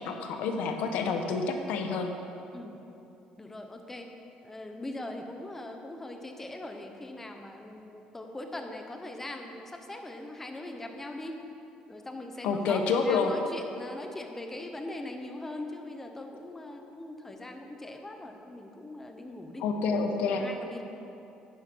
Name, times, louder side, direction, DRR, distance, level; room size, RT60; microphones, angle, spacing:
voice 1, 0.0-2.1 12.4-13.3 19.6-20.5, left 4 dB, 80° left, 5 dB, 1.1 m, -28 dB
voice 2, 3.4-4.1 4.4-11.3 11.9-19.6 20.3-20.8, left 1 dB, 15° left, 4 dB, 1.0 m, -41 dB
10.5 x 9.9 x 4.6 m, 2.9 s
cardioid pair, 130°, 2 cm